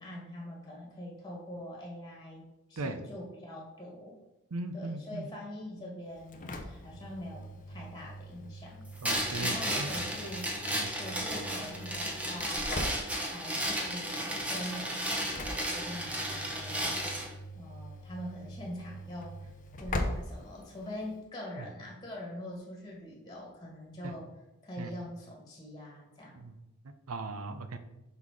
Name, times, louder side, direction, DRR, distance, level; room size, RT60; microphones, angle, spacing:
voice 1, 0.0-4.2 4.7-8.9 9.4-10.5 10.9-12.8 13.2-17.1 17.5-19.4 19.8-24.3 24.6-26.3, left 1 dB, 20° left, -2 dB, 1.6 m, -43 dB
voice 2, 4.5-5.3 9.0-9.5 9.8-9.9 10.7-10.9 12.7-12.9 24.8-24.9 26.4-26.5 27.1-27.8, right 3 dB, 70° right, 9 dB, 0.6 m, -37 dB
Engine / Slam, 6.1-21.2, left 1 dB, 35° left, 0.6 m, -42 dB
sound 1, 9.0-17.3, equal, 5° right, 1.0 m, -34 dB
5.6 x 4.0 x 4.7 m, 0.94 s
head